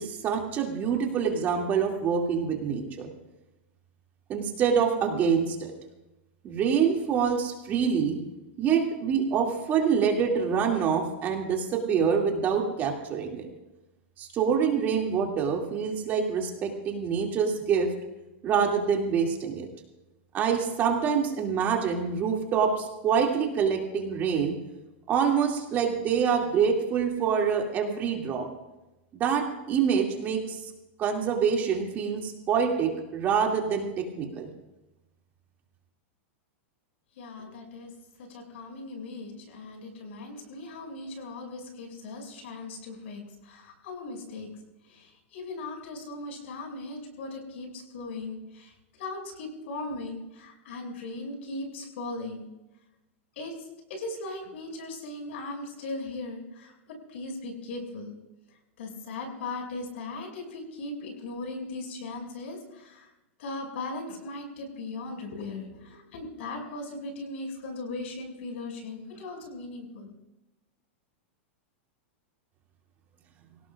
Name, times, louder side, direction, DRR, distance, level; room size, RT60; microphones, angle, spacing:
voice 1, 0.0-3.1 4.3-5.7 6.4-8.2 8.6-13.5 14.2-17.9 18.4-19.7 20.3-24.5 25.1-28.5 29.1-30.6 31.0-34.5, right 6 dB, 25° right, 1 dB, 2.5 m, -26 dB
voice 2, 37.2-37.9 38.2-44.5 44.9-52.5 53.4-58.1 58.8-63.1 63.4-70.1, left 2 dB, 70° left, 2 dB, 6.3 m, -38 dB
26.0 x 17.5 x 2.5 m, 0.99 s
supercardioid pair, 155°, 7 cm